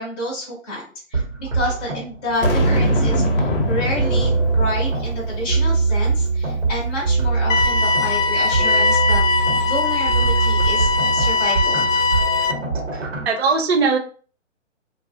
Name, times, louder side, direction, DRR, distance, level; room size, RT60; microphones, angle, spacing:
voice 1, 0.0-11.8, left 1 dB, 10° left, -6 dB, 0.5 m, -29 dB
sound 1, 1.1-13.3, right 4 dB, 80° right, 1.1 m, -22 dB
Boom, 2.4-5.7, left 3 dB, 45° left, 0.7 m, -25 dB
sound 2, 7.5-12.5, left 4 dB, 85° left, 0.5 m, -20 dB
voice 2, 12.9-14.0, right 4 dB, 55° right, 5 dB, 0.7 m, -22 dB
2.6 x 2.3 x 2.5 m, 0.39 s
figure-of-eight pair, 135°, 37 cm